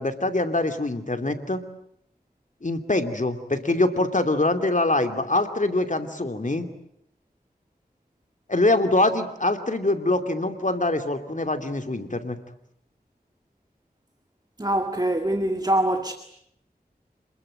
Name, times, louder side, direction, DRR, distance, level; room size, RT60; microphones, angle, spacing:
voice 1, 0.0-1.6 2.6-6.7 8.5-12.4, left 2 dB, 50° left, 2.7 m, -24 dB
voice 2, 14.6-16.1, right 1 dB, 25° right, 2.0 m, -24 dB
27.5 x 21.0 x 8.9 m
wide cardioid pair, 45°, 17 cm